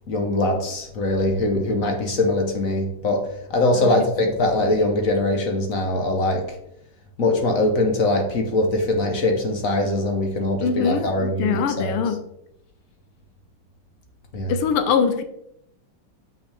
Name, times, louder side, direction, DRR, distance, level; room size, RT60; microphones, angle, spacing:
voice 1, 0.1-6.6 7.2-12.0 14.3-14.5, left 2 dB, 55° left, 3 dB, 0.9 m, -22 dB
voice 2, 10.6-12.2 14.5-15.2, left 6 dB, 85° left, 9 dB, 1.6 m, -23 dB
7.2 x 5.9 x 3.3 m, 0.77 s
omnidirectional pair, 2.4 m